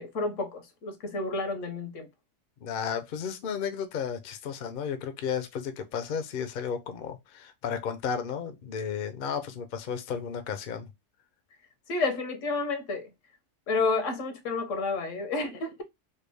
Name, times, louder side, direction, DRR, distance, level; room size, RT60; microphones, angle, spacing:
voice 1, 0.0-2.1 11.9-13.1 13.7-15.8, left 3 dB, 80° left, 1.2 m, -30 dB
voice 2, 2.6-10.9, left 7 dB, 55° left, 0.6 m, -33 dB
3.3 x 2.3 x 3.3 m
omnidirectional pair, 1.3 m